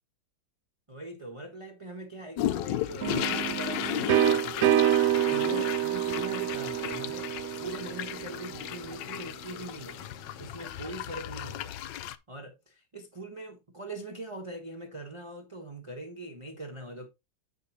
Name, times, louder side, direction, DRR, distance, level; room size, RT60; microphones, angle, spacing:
voice 1, 0.9-7.3 7.6-10.1 10.4-17.1, right 2 dB, 25° right, 0.8 m, -42 dB
sound 1, 2.4-12.2, left 12 dB, 80° left, 1.2 m, -35 dB
sound 2, 3.0-8.7, right 12 dB, 75° right, 0.7 m, -27 dB
8.1 x 6.7 x 2.9 m
omnidirectional pair, 2.0 m